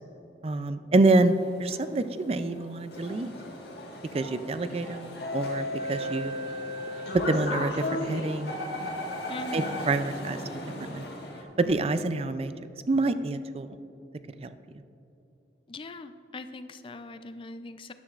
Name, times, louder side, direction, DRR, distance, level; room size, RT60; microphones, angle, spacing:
voice 1, 0.4-3.3 4.1-6.3 7.3-8.5 9.5-10.4 10.8-11.0 11.6-12.5 12.9-13.8 14.4-14.5, right 2 dB, 35° right, 11 dB, 0.4 m, -27 dB
sound 1, 1.2-11.4, left 1 dB, 65° left, 1.6 m, -35 dB
voice 2, 9.3-9.9 15.7-17.9, left 2 dB, 30° left, 10 dB, 0.4 m, -41 dB
13.0 x 10.5 x 2.5 m, 3.0 s
head